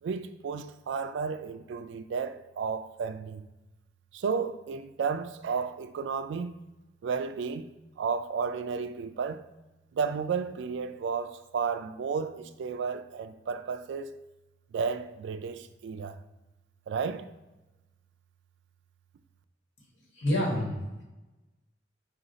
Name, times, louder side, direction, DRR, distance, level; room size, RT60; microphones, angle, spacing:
voice 1, 0.0-3.4 4.1-6.6 7.0-7.7 8.0-9.4 9.9-14.2 14.7-16.1 16.9-17.3, right 5 dB, 70° right, 0.3 m, -33 dB
voice 2, 20.1-21.0, left 1 dB, 75° left, 1.5 m, -28 dB
4.9 x 2.4 x 3.8 m
head